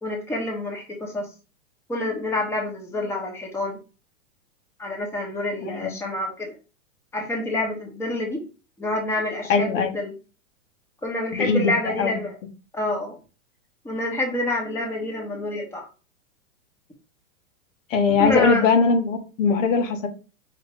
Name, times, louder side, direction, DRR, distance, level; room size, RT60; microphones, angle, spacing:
voice 1, 0.0-1.3 1.9-3.8 4.8-6.5 7.1-8.4 8.8-10.1 11.0-12.4 12.7-13.2 13.8-15.9 18.2-18.7, left 1 dB, 5° left, 0 dB, 1.1 m, -27 dB
voice 2, 5.6-5.9 9.5-10.0 11.3-12.2 17.9-20.1, left 5 dB, 70° left, 6 dB, 1.3 m, -21 dB
4.8 x 3.1 x 3.1 m, 0.33 s
hypercardioid pair, 125°, 41 cm